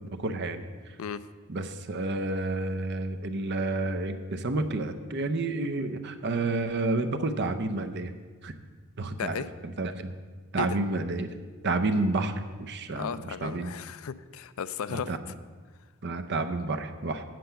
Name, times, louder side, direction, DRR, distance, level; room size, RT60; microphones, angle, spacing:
voice 1, 0.2-1.0 1.5-8.1 8.4-8.5 9.0-10.1 10.5-11.4 11.6-13.7 14.9-15.2 16.0-17.2, right 2 dB, 50° right, 8 dB, 0.7 m, -30 dB
voice 2, 12.9-15.3, left 7 dB, 70° left, 14 dB, 0.4 m, -35 dB
7.7 x 7.6 x 6.9 m, 1.5 s
head